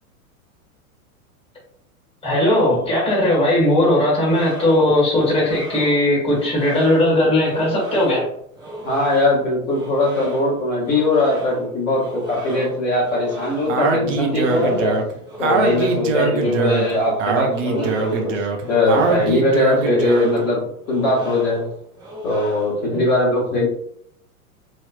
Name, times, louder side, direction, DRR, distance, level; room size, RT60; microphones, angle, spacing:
voice 1, 2.2-8.3 16.2-16.3 22.9-23.0, left 1 dB, 15° left, -5 dB, 1.5 m, -18 dB
sound 1, 4.2-23.0, right 1 dB, 10° right, 0.5 m, -35 dB
voice 2, 8.8-15.0 15.4-21.6 22.2-23.7, left 2 dB, 35° left, -7 dB, 1.4 m, -20 dB
Speech, 13.7-20.4, right 4 dB, 60° right, 0.7 m, -22 dB
3.1 x 2.8 x 2.3 m, 0.69 s
hypercardioid pair, 105°, 44 cm